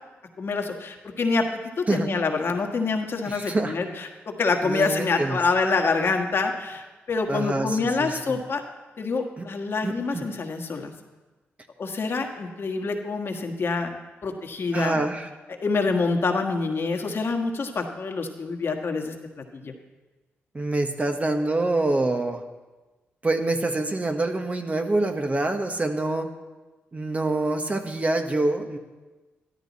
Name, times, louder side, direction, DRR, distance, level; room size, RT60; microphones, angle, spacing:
voice 1, 0.4-8.6 9.0-10.9 11.8-13.9 14.2-15.1 15.6-19.7, left 4 dB, 55° left, 3 dB, 1.5 m, -26 dB
voice 2, 3.2-3.8 4.6-5.4 7.3-8.4 9.4-9.5 9.8-10.3 14.7-15.3 20.5-22.4 23.2-26.3 26.9-28.8, right 2 dB, 30° right, 5 dB, 1.3 m, -26 dB
13.0 x 12.0 x 4.2 m, 1.2 s
cardioid pair, 60°, 5 cm